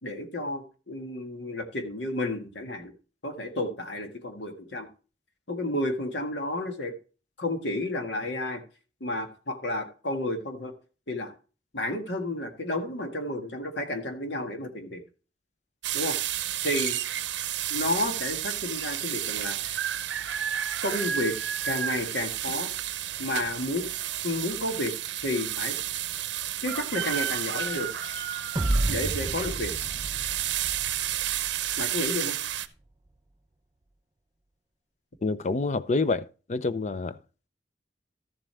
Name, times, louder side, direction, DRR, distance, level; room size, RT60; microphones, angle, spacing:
voice 1, 0.0-2.9 3.2-4.9 5.5-6.9 7.4-8.6 9.0-10.7 11.1-11.3 11.7-15.0 15.9-16.2 16.6-17.0 17.7-19.8 20.8-21.4 21.6-22.7 23.2-23.9 24.2-24.9 25.2-25.8 26.6-27.9 28.9-29.7 31.8-32.4, left 1 dB, 85° left, 1.7 m, -31 dB
sound 1, 15.8-32.7, right 11 dB, 90° right, 0.6 m, -31 dB
sound 2, 28.6-31.8, right 1 dB, 25° right, 0.5 m, -31 dB
voice 2, 35.2-37.2, left 3 dB, 40° left, 0.5 m, -27 dB
13.0 x 7.5 x 3.3 m
head